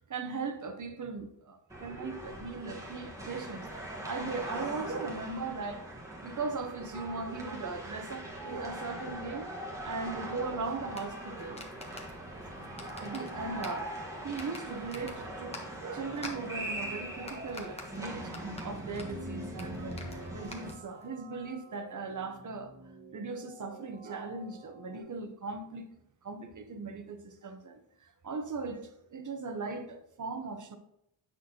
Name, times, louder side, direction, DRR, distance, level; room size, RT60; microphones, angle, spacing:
voice 1, 0.1-5.8 6.2-9.5 9.8-11.6 13.0-13.9 14.2-18.3 18.6-22.7 23.1-25.9 26.2-30.8, right 4 dB, 45° right, 0.8 m, -38 dB
sound 1, 1.7-20.7, right 1 dB, 5° right, 1.3 m, -41 dB
sound 2, 10.9-21.1, left 2 dB, 15° left, 1.0 m, -49 dB
sound 3, 12.2-25.0, right 2 dB, 80° right, 1.6 m, -53 dB
8.7 x 6.0 x 2.8 m
wide cardioid pair, 140°, 44 cm